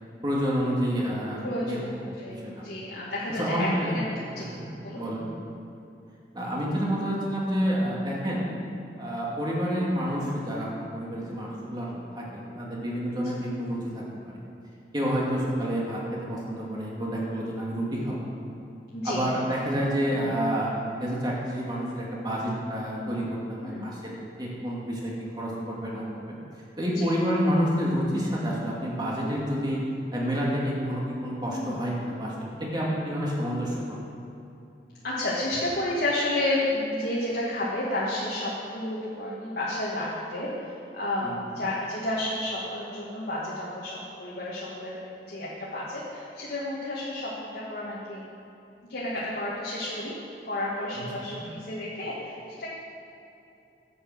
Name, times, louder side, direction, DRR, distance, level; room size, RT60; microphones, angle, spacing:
voice 1, 0.2-1.8 2.3-2.6 3.4-4.0 4.4-5.3 6.3-8.4 9.0-14.4 14.9-18.2 19.0-20.7 21.0-24.0 24.4-26.4 26.8-29.8 30.1-32.3 32.6-33.8 41.2-41.4 51.0-51.1, equal, 25° right, -4 dB, 2.4 m, -29 dB
voice 2, 1.4-4.0 4.3-4.5 4.8-5.0 11.2-11.5 18.9-19.2 23.6-24.0 26.9-27.1 31.5-31.8 35.0-45.0 45.3-48.2 48.9-50.2 50.4-52.7, left 1 dB, 60° left, -7 dB, 2.0 m, -31 dB
11.0 x 7.1 x 7.8 m, 2.8 s
head